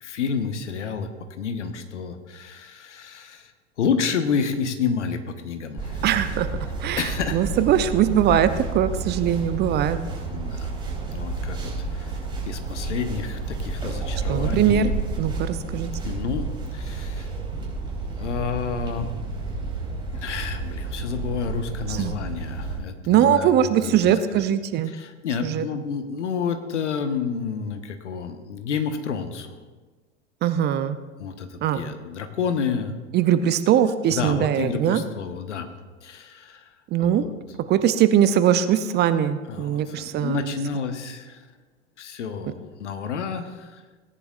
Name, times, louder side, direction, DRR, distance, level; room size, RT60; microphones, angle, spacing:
voice 1, 0.0-3.5 3.8-6.0 7.0-7.5 10.3-10.8 11.1-12.2 12.5-14.9 16.0-17.3 18.2-19.1 20.1-23.5 23.8-24.4 24.9-29.6 31.2-32.9 34.1-35.7 36.0-37.3 39.5-41.5 42.0-43.8, left 6 dB, 75° left, 8 dB, 1.2 m, -30 dB
sound 1, 5.8-22.8, right 3 dB, 15° right, 4.1 m, -31 dB
voice 2, 6.0-6.5 6.8-10.0 14.3-14.9 15.2-15.9 21.9-22.1 23.1-24.9 25.4-25.6 30.4-31.0 31.6-31.9 33.1-35.0 36.9-37.2 37.7-40.4, right 10 dB, 30° right, 12 dB, 0.6 m, -21 dB
18.0 x 10.5 x 2.5 m, 1.3 s
figure-of-eight pair, 90°, 36 cm